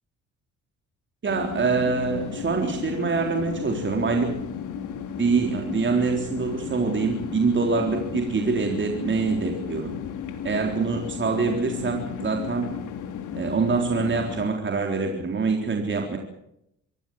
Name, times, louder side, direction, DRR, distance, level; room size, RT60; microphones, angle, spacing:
voice 1, 1.2-4.3 5.2-9.9 10.4-12.7 13.3-16.2, right 4 dB, 40° right, 2 dB, 3.8 m, -25 dB
sound 1, 1.3-14.5, left 8 dB, 80° left, 3.2 m, -34 dB
24.5 x 16.5 x 7.8 m, 0.80 s
cardioid pair, 90°, 30 cm